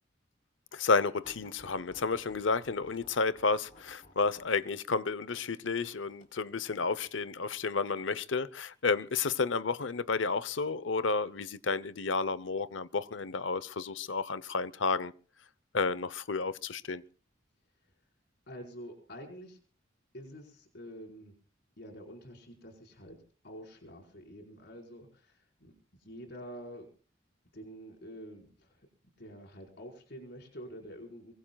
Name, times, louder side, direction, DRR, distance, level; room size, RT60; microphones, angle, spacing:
voice 1, 0.7-15.1 15.7-17.0, left 4 dB, 85° left, 0.8 m, -31 dB
sound 1, 1.2-8.0 8.8-9.2 10.2-10.8 11.5-11.7 12.1-12.2, equal, 45° left, 4.2 m, -58 dB
voice 2, 18.5-19.6 20.1-21.3 21.8-25.7 26.0-26.9 27.5-28.9 29.2-31.3, equal, 60° left, 4.9 m, -47 dB
24.0 x 23.5 x 2.4 m
head